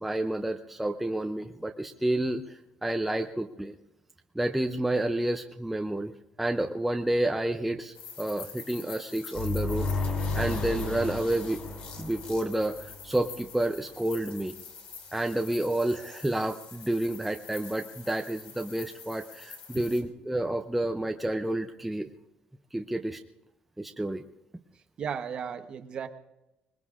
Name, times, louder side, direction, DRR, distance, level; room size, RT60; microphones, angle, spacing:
voice 1, 0.0-3.7 4.3-9.9 10.3-11.6 12.0-14.6 15.1-22.1 22.7-23.2 23.8-24.2, right 1 dB, 5° right, 5 dB, 0.5 m, -30 dB
sound 1, 7.9-20.0, left 6 dB, 55° left, 2.8 m, -46 dB
sound 2, 9.3-13.1, left 3 dB, 40° left, 3.7 m, -32 dB
voice 2, 25.0-26.1, right 7 dB, 35° right, 8 dB, 1.0 m, -35 dB
25.0 x 20.5 x 2.5 m, 0.93 s
cardioid pair, 175°, 3 cm